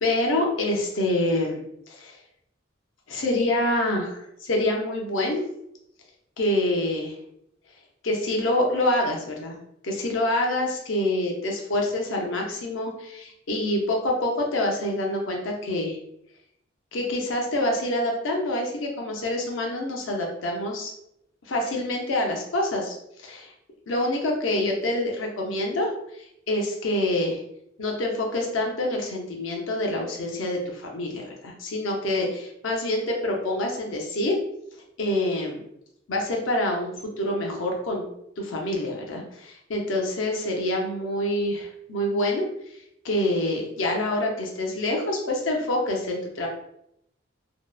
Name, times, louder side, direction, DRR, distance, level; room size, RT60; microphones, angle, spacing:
voice 1, 0.0-1.6 1.9-2.2 3.1-5.4 6.4-7.2 8.0-9.5 9.8-16.0 16.9-20.9 21.5-23.5 23.9-27.4 27.8-34.4 35.0-35.6 36.1-42.8 43.0-46.5, left 1 dB, 90° left, 0 dB, 0.6 m, -26 dB
2.7 x 2.0 x 2.2 m, 0.77 s
head